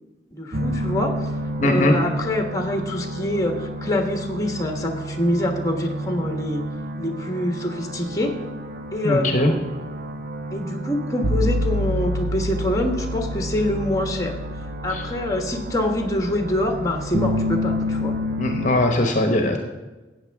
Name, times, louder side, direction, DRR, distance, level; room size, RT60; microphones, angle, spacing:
voice 1, 0.3-1.1 1.6-6.6 7.0-8.3 8.9-9.6 10.5-14.3 14.8-18.1, left 1 dB, 20° left, 3 dB, 1.3 m, -25 dB
sound 1, 0.5-18.8, equal, 55° right, 0.9 m, -29 dB
voice 2, 1.6-2.0 9.0-9.5 14.9-15.0 18.4-19.6, left 1 dB, 45° left, 4 dB, 1.0 m, -20 dB
14.0 x 8.7 x 3.5 m, 1.2 s
head